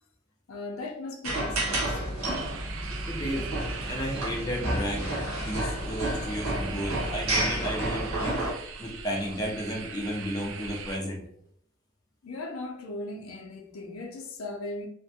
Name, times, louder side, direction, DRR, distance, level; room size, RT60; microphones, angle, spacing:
voice 1, 0.5-2.4 12.2-14.9, left 2 dB, 80° left, 0.5 m, -38 dB
sound 1, 1.2-8.5, right 1 dB, 85° right, 0.9 m, -31 dB
sound 2, 2.3-11.0, right 5 dB, 65° right, 0.4 m, -41 dB
voice 2, 3.1-3.5 3.9-8.4 8.8-11.2, equal, 20° left, 0.5 m, -33 dB
2.5 x 2.1 x 2.7 m
head